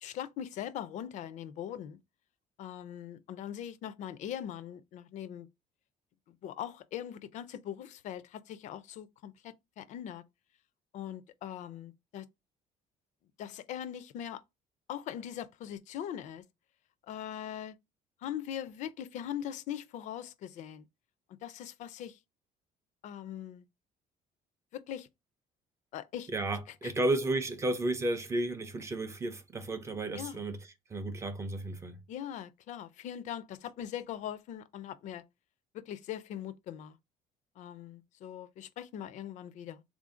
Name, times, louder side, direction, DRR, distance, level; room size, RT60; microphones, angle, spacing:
voice 1, 0.0-2.0 2.6-5.5 6.3-10.2 10.9-12.3 13.4-14.4 14.9-16.4 17.1-17.8 18.2-20.9 21.4-22.2 23.0-23.6 24.7-25.1 25.9-26.3 26.8-26.9 30.2-30.4 32.1-35.2 35.7-37.0 37.6-39.8, left 10 dB, 55° left, 0.4 m, -41 dB
voice 2, 26.3-32.0, right 2 dB, 20° right, 0.4 m, -33 dB
3.6 x 2.5 x 3.7 m
cardioid pair, 175°, 15 cm